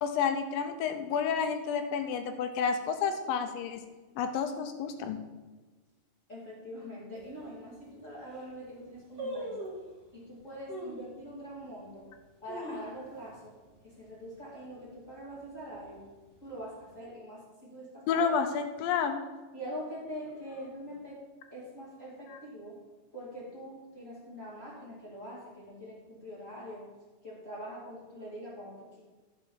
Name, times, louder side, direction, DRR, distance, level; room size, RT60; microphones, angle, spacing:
voice 1, 0.0-3.8 4.2-5.2 18.1-19.3 22.3-22.4, left 6 dB, 75° left, 7 dB, 2.3 m, -30 dB
voice 2, 6.3-9.7 10.1-12.1 12.4-13.5 13.8-16.0 16.4-18.3 19.5-21.2 21.5-22.8 23.1-26.9 27.2-29.0, equal, 25° left, -7 dB, 2.4 m, -44 dB
sound 1, 7.2-7.3 7.9-8.0 8.2-8.6 9.2-9.9 10.7-11.1 11.6-11.7 12.2-13.4 13.7-13.8 14.1-14.5 14.9-15.2 15.8-16.6 16.9-17.0, right 1 dB, 25° right, 1.2 m, -40 dB
10.5 x 5.3 x 7.1 m, 1.3 s
omnidirectional pair, 4.5 m